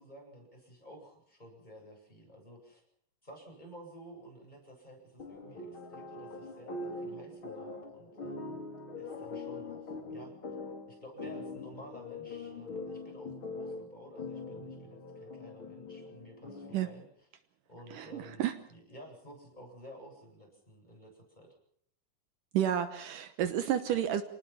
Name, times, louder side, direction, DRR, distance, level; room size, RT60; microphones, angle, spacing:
voice 1, 0.0-2.8 3.2-8.7 9.0-10.3 10.9-17.3 17.7-21.5, equal, 10° left, 0 dB, 8.0 m, -52 dB
sound 1, 5.2-17.0, left 3 dB, 35° left, 3.9 m, -43 dB
voice 2, 17.9-18.6 22.5-24.2, right 10 dB, 75° right, 10 dB, 2.6 m, -31 dB
29.5 x 19.0 x 5.9 m, 0.67 s
omnidirectional pair, 4.0 m